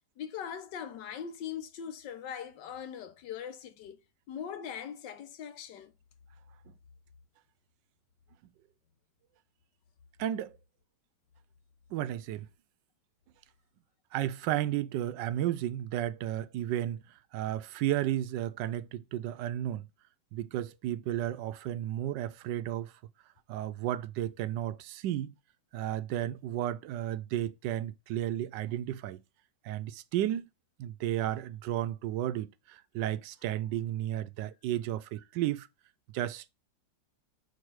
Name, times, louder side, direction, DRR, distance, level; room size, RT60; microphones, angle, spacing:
voice 1, 0.2-4.0 4.3-5.9, left 8 dB, 80° left, 1.5 m, -41 dB
voice 2, 10.2-10.6 11.9-12.5 14.1-17.0 17.3-19.9 20.3-22.9 23.5-25.3 25.7-29.2 29.6-30.5 30.8-35.7 36.1-36.5, right 12 dB, 80° right, 1.2 m, -33 dB
5.0 x 4.8 x 4.6 m
omnidirectional pair, 1.9 m